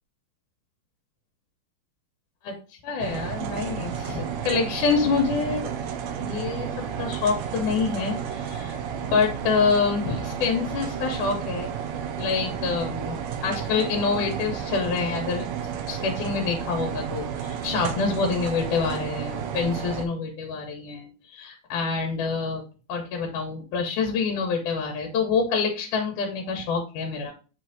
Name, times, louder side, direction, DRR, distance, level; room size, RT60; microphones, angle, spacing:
voice 1, 2.8-5.8 6.2-6.7 7.0-11.7 12.2-15.5 15.9-22.6 22.9-27.3, left 5 dB, 90° left, 1 dB, 2.5 m, -26 dB
sound 1, 3.0-20.1, right 8 dB, 70° right, 1.9 m, -32 dB
7.4 x 3.3 x 3.9 m, 0.35 s
omnidirectional pair, 3.5 m